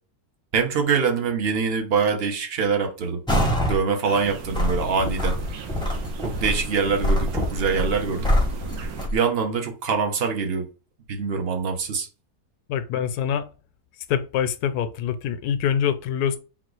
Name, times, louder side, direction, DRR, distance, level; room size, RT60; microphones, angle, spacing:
voice 1, 0.5-3.2 3.7-5.4 6.2-8.3 9.1-10.7 11.1-12.1, right 5 dB, 45° right, 0.9 m, -24 dB
sound 1, 3.3-3.8 4.2-9.2, left 1 dB, 5° left, 0.6 m, -25 dB
sound 2, 4.0-9.1, right 7 dB, 70° right, 1.2 m, -38 dB
voice 2, 12.7-13.5 14.1-16.4, left 8 dB, 75° left, 1.1 m, -25 dB
3.9 x 2.4 x 4.6 m
omnidirectional pair, 1.7 m